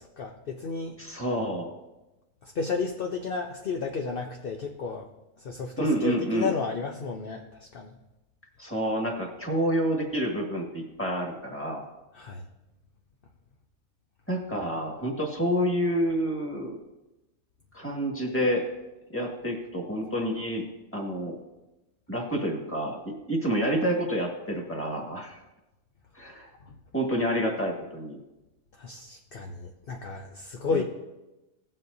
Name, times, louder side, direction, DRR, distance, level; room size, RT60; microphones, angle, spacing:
voice 1, 0.0-1.0 2.5-5.1 5.4-7.9 12.1-12.5 26.7-26.8 28.7-30.8, left 4 dB, 50° left, 2 dB, 0.8 m, -32 dB
voice 2, 1.0-1.7 5.8-6.5 8.6-11.9 14.3-16.8 17.7-18.6 19.1-20.7 20.9-21.4 22.1-25.4 26.2-26.5 26.9-28.2 30.7-30.8, equal, 10° left, 0 dB, 1.8 m, -28 dB
17.5 x 7.6 x 2.7 m, 1.0 s
omnidirectional pair, 1.4 m